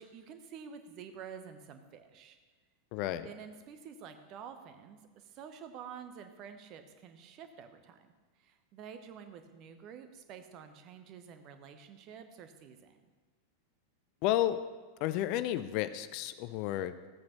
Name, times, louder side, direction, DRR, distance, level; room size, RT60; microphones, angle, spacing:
voice 1, 0.0-2.4 3.2-8.1 8.4-13.1, right 7 dB, 35° right, 8 dB, 1.0 m, -49 dB
voice 2, 2.9-3.3 14.2-14.6 15.0-17.1, left 13 dB, 45° left, 13 dB, 0.5 m, -32 dB
15.5 x 8.5 x 3.0 m, 1.3 s
figure-of-eight pair, 90°, 0 cm